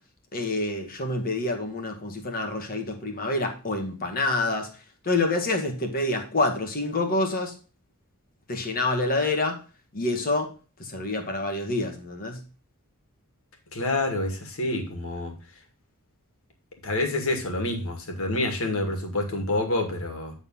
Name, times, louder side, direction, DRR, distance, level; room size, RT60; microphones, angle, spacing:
voice 1, 0.3-7.5 8.5-9.6 9.9-10.5 10.8-12.4, left 2 dB, 40° left, 3 dB, 1.7 m, -27 dB
voice 2, 13.7-15.3 16.8-20.3, left 2 dB, 65° left, 3 dB, 2.3 m, -27 dB
9.3 x 4.1 x 5.5 m, 0.35 s
head